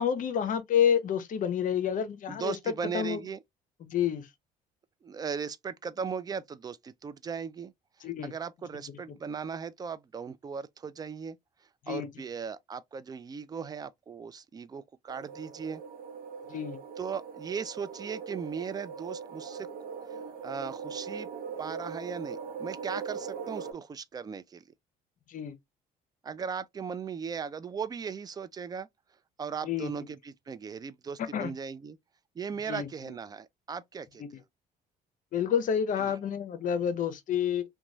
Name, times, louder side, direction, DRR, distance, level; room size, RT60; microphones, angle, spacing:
voice 1, 0.0-3.2 3.8-4.3 8.0-8.3 11.9-12.1 16.5-16.8 25.3-25.5 29.6-29.9 31.3-31.5 32.7-32.9 34.2-34.3 35.3-37.6, left 8 dB, 50° left, 0.7 m, -29 dB
voice 2, 2.3-3.4 5.0-7.7 8.2-11.4 11.9-15.8 17.0-19.7 20.1-21.3 21.6-24.6 26.2-28.9 29.4-32.0 32.4-34.4 36.0-36.2, right 6 dB, 25° right, 0.3 m, -38 dB
sound 1, 15.1-23.7, right 6 dB, 60° right, 0.8 m, -40 dB
3.0 x 2.2 x 2.6 m
cardioid pair, 110°, 17 cm